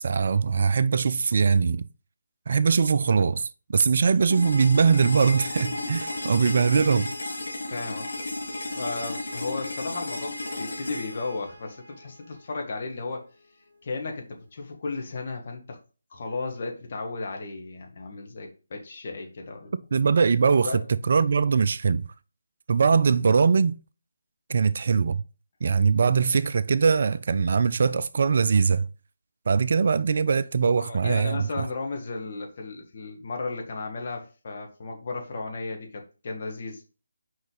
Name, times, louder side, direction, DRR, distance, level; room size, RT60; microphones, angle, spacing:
voice 1, 0.0-1.9 2.5-7.1 19.9-20.8 21.1-22.1 22.7-23.7 24.5-25.2 25.6-28.9 29.5-31.7, right 5 dB, 45° right, 0.3 m, -22 dB
sound 1, 4.3-12.3, left 2 dB, 60° left, 2.1 m, -34 dB
voice 2, 7.7-8.1 8.7-13.3 13.8-15.8 16.1-19.7 20.6-20.8 30.9-36.8, left 3 dB, 40° left, 1.8 m, -34 dB
6.2 x 5.0 x 3.9 m
figure-of-eight pair, 150°, 0 cm